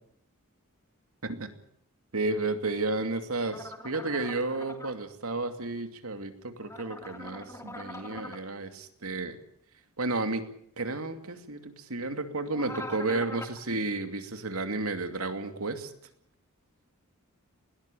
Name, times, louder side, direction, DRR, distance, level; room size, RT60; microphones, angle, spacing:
voice 1, 2.1-9.4 10.0-10.4 10.8-15.9, right 3 dB, 80° right, 7 dB, 2.6 m, -32 dB
sound 1, 3.4-4.9 6.6-8.4 12.5-13.6, left 1 dB, 15° left, 3.0 m, -42 dB
20.5 x 18.5 x 9.1 m, 0.67 s
head